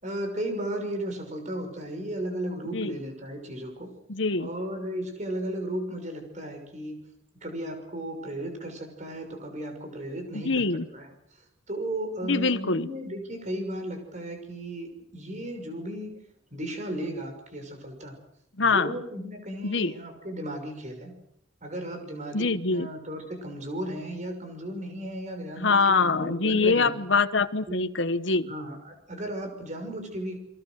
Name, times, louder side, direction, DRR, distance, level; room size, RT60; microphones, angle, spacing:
voice 1, 0.0-3.9 4.4-7.0 7.3-10.6 10.9-11.1 11.7-16.1 16.5-18.2 18.7-21.2 21.6-26.9 27.7-27.9 28.5-30.4, right 1 dB, 40° right, 4 dB, 6.2 m, -35 dB
voice 2, 4.1-4.5 10.3-10.9 12.2-12.9 18.6-19.0 19.6-19.9 22.3-22.9 25.6-28.5, left 4 dB, 70° left, 11 dB, 1.1 m, -24 dB
29.5 x 23.0 x 6.5 m, 0.77 s
head